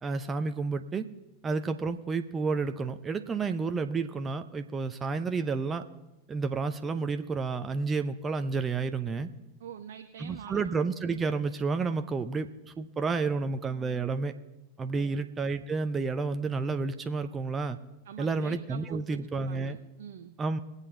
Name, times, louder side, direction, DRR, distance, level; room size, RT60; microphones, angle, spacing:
voice 1, 0.0-1.1 1.4-5.8 6.3-9.3 10.2-12.5 12.8-14.3 14.8-17.8 18.2-19.8 20.4-20.6, right 4 dB, 20° right, 8 dB, 0.7 m, -30 dB
voice 2, 9.6-10.7 14.9-15.3 18.0-19.2 19.5-20.4, right 9 dB, 60° right, 7 dB, 0.7 m, -45 dB
21.0 x 8.2 x 4.0 m, 1.0 s
figure-of-eight pair, 90°, 0 cm